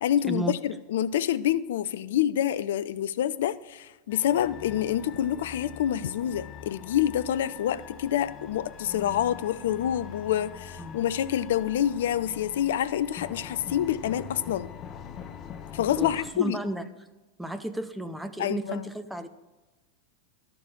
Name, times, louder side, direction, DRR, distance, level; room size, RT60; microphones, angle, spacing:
voice 1, 0.0-14.7 15.7-16.6 18.4-18.9, left 10 dB, 55° left, 0.4 m, -27 dB
sound 1, 4.1-16.3, left 8 dB, 30° left, 0.7 m, -43 dB
voice 2, 16.0-16.8 17.4-19.3, right 1 dB, 5° right, 0.7 m, -33 dB
11.5 x 7.0 x 6.0 m
figure-of-eight pair, 90°, 0 cm